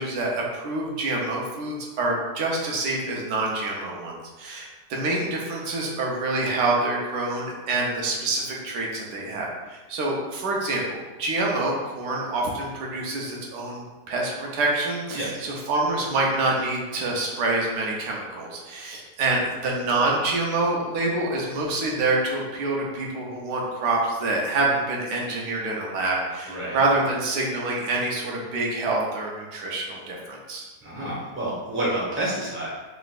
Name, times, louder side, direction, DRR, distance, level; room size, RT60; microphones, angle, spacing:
voice 1, 0.0-30.6, right 2 dB, 85° right, -2 dB, 1.4 m, -26 dB
voice 2, 26.5-26.8 30.8-32.7, right 1 dB, 10° right, -7 dB, 1.0 m, -29 dB
4.0 x 3.8 x 2.4 m, 1.2 s
omnidirectional pair, 1.7 m